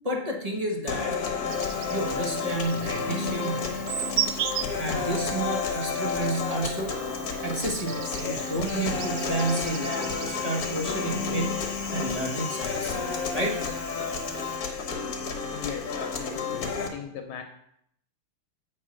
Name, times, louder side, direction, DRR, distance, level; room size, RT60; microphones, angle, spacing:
voice 1, 0.0-1.2 1.9-3.9 4.8-7.0 7.4-13.0 13.3-13.7, right 2 dB, 25° right, 0 dB, 0.8 m, -31 dB
sound 1, 0.9-16.9, left 5 dB, 50° left, 1.4 m, -31 dB
Insect, 1.5-14.6, right 10 dB, 80° right, 0.9 m, -38 dB
voice 2, 15.5-17.4, left 7 dB, 75° left, 4 dB, 1.6 m, -38 dB
8.1 x 4.4 x 6.3 m, 0.72 s
omnidirectional pair, 2.4 m